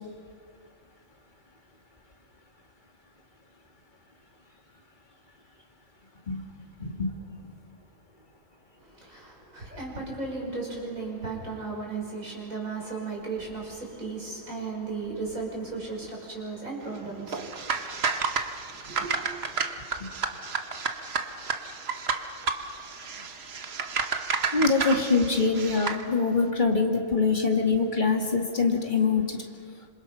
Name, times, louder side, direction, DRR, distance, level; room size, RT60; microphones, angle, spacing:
voice 1, 6.8-7.1 24.5-29.4, left 4 dB, 35° left, 2 dB, 2.4 m, -24 dB
voice 2, 8.8-19.9, right 4 dB, 75° right, -2 dB, 6.0 m, -36 dB
sound 1, 17.3-26.0, right 5 dB, 50° right, 1.3 m, -31 dB
26.5 x 26.0 x 5.7 m, 2.2 s
omnidirectional pair, 1.4 m